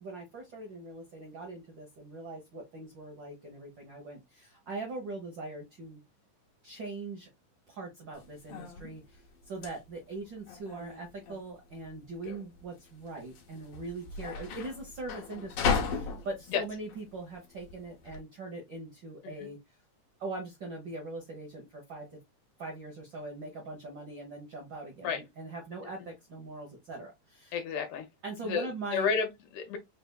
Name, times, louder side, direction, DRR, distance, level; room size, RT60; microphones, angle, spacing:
voice 1, 0.0-6.0 6.6-7.3 7.7-19.6 20.2-22.2 22.6-27.6 28.2-29.1, right 2 dB, 80° right, 1.0 m, -41 dB
sound 1, 8.1-18.2, left 5 dB, 65° left, 1.6 m, -36 dB
voice 2, 27.5-28.1 28.4-29.8, left 6 dB, 80° left, 2.1 m, -32 dB
5.0 x 3.4 x 2.3 m
omnidirectional pair, 3.7 m